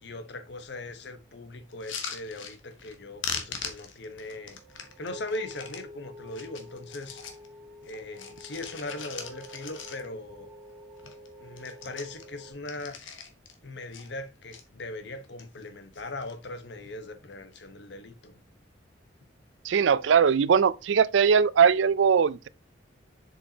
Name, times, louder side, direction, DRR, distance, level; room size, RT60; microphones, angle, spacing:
voice 1, 0.0-4.6 5.0-7.2 7.8-10.5 11.0-11.1 11.4-13.0 13.6-18.4, left 2 dB, 65° left, 1.0 m, -39 dB
sound 1, 1.7-3.0 3.2-5.8 6.3-7.5 7.8-10.3 10.6-10.7 11.0-11.3 11.5-13.6 13.9-14.6 15.2-15.7 15.9-16.5 17.3-17.6, left 6 dB, 90° left, 1.2 m, -40 dB
sound 2, 4.5-12.5, left 1 dB, ahead, 2.0 m, -48 dB
voice 2, 19.6-22.5, right 6 dB, 75° right, 0.4 m, -21 dB
7.1 x 5.4 x 2.8 m
head